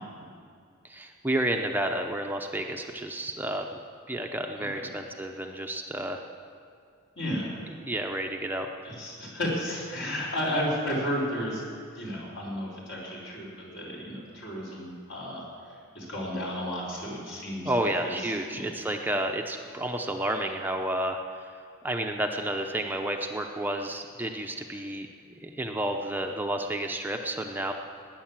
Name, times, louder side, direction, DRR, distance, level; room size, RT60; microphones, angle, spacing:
voice 1, 0.8-3.8 4.1-6.2 7.8-8.7 17.6-21.5 21.8-25.1 25.4-27.7, right 1 dB, 10° right, 3 dB, 0.7 m, -31 dB
voice 2, 7.2-7.6 8.8-11.6 11.9-15.4 15.9-18.7, equal, 60° left, -5 dB, 5.0 m, -33 dB
18.5 x 9.4 x 7.5 m, 2.3 s
head